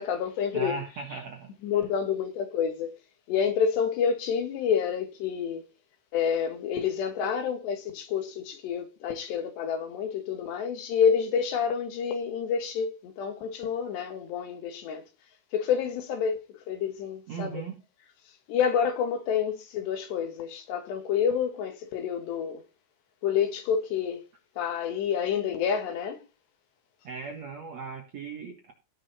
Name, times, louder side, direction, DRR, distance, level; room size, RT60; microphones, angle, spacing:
voice 1, 0.0-0.8 1.6-2.9 3.3-5.7 6.1-15.0 15.5-17.6 18.5-22.6 23.2-24.2 24.6-26.2, left 7 dB, 75° left, 3.8 m, -28 dB
voice 2, 0.5-1.8 17.3-17.8 27.0-28.7, right 4 dB, 55° right, 2.0 m, -38 dB
18.0 x 6.3 x 4.2 m
omnidirectional pair, 5.1 m